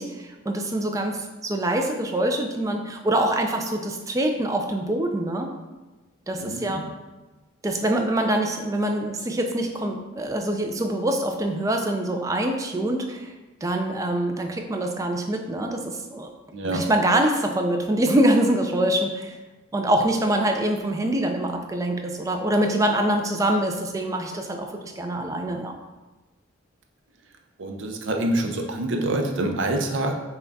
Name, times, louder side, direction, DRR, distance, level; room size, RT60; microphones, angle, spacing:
voice 1, 0.0-5.5 6.3-6.8 7.6-13.3 13.6-16.3 16.7-19.4 19.7-25.7, right 1 dB, 15° right, 4 dB, 0.3 m, -24 dB
voice 2, 6.4-6.9 16.5-16.9 27.6-30.1, right 1 dB, 65° right, 3 dB, 0.6 m, -26 dB
5.6 x 2.3 x 4.0 m, 1.2 s
head